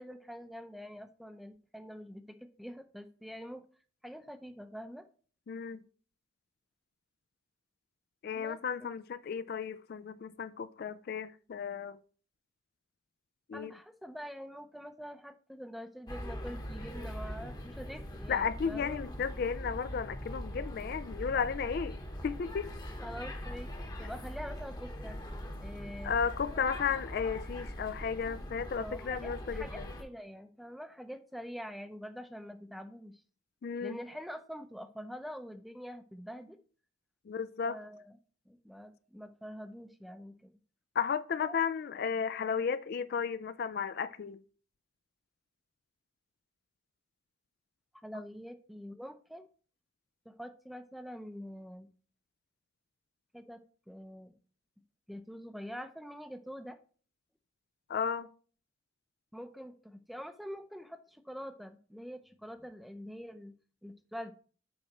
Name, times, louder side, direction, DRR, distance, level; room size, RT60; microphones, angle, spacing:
voice 1, 0.0-3.7 4.0-5.0 8.3-8.9 13.5-19.0 23.0-23.7 24.0-25.2 25.6-26.1 28.8-33.2 33.8-36.6 37.6-38.2 38.5-40.5 41.4-41.6 47.9-49.5 50.3-51.9 53.3-53.6 53.9-54.4 55.1-56.8 59.3-63.6 63.8-64.3, equal, ahead, 0.6 m, -45 dB
voice 2, 5.5-5.8 8.2-12.0 13.5-13.7 18.3-22.0 22.2-22.7 26.0-29.9 33.6-34.0 37.3-37.8 41.0-44.4 57.9-58.3, left 6 dB, 50° left, 0.3 m, -34 dB
sound 1, 16.1-30.0, equal, 20° left, 1.0 m, -42 dB
7.9 x 4.9 x 4.2 m
head